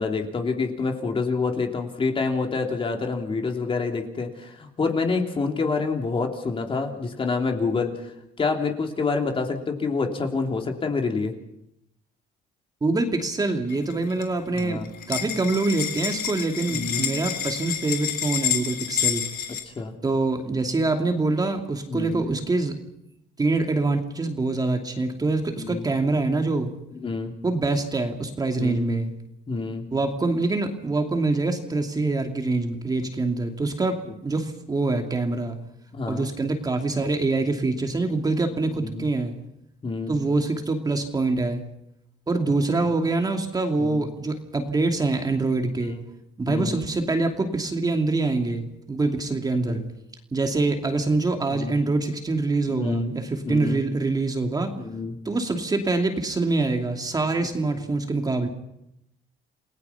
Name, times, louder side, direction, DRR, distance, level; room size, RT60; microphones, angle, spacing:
voice 1, 0.0-11.3 14.5-14.9 16.7-17.1 19.6-19.9 21.9-22.2 25.6-25.8 26.9-27.3 28.6-28.9 29.5-29.9 35.9-36.3 38.8-39.1 39.8-40.1 43.8-44.1 45.8-46.0 46.5-46.8 49.6-49.9 51.5-51.8 52.7-53.1 53.4-53.8 54.8-55.1, left 4 dB, 30° left, 3 dB, 3.4 m, -27 dB
voice 2, 12.8-19.2 20.0-22.8 23.4-26.7 27.4-29.1 29.9-35.6 36.1-39.3 40.1-41.6 42.3-46.0 46.4-49.8 50.3-54.7 55.2-58.5, right 3 dB, 20° right, 4 dB, 2.7 m, -25 dB
sound 1, 13.7-14.2 14.6-14.7 14.9-19.6, left 10 dB, 65° left, 3.4 m, -28 dB
29.0 x 18.0 x 5.9 m, 0.80 s
cardioid pair, 110°, 17 cm